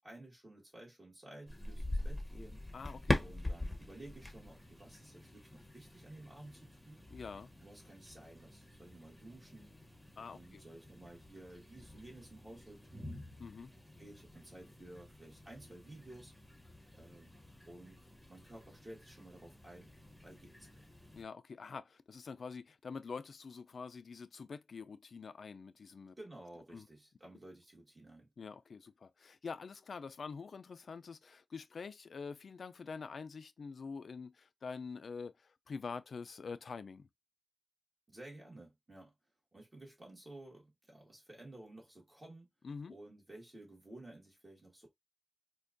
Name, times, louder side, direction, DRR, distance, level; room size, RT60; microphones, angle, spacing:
voice 1, 0.0-2.6 3.2-7.1 7.6-9.7 10.3-13.2 14.0-16.3 16.9-17.3 17.7-18.0 18.3-19.9 20.2-20.8 26.2-28.3 38.1-39.1 39.5-42.5 42.9-44.9, right 1 dB, 30° right, 1.4 m, -54 dB
sound 1, 1.5-21.2, left 1 dB, 5° left, 0.9 m, -44 dB
voice 2, 2.7-3.2 3.4-3.5 7.1-7.5 10.2-10.6 13.4-13.7 21.1-26.1 26.7-26.9 28.4-37.1 42.6-42.9, left 5 dB, 75° left, 0.3 m, -46 dB
4.4 x 2.3 x 2.5 m
wide cardioid pair, 80°, 0 cm